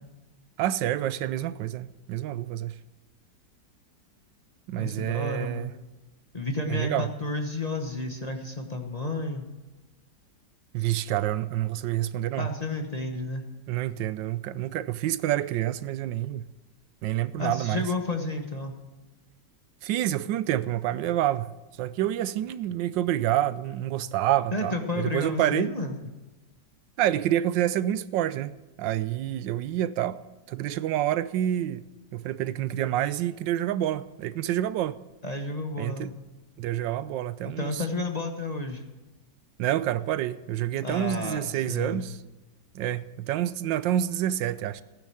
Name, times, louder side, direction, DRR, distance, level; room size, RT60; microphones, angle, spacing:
voice 1, 0.6-2.8 4.7-5.7 6.7-7.1 10.7-12.5 13.7-16.5 17.0-17.8 19.8-21.5 21.8-25.7 27.0-30.2 30.5-31.8 32.1-35.0 35.8-36.1 36.6-37.8 39.6-42.2 42.7-44.8, right 12 dB, 85° right, 1.3 m, -28 dB
voice 2, 4.8-5.7 6.3-9.4 12.4-13.4 17.4-18.7 24.5-26.0 35.2-36.1 37.4-38.8 40.8-42.0, left 2 dB, 25° left, 1.2 m, -31 dB
15.5 x 10.0 x 6.3 m
omnidirectional pair, 1.9 m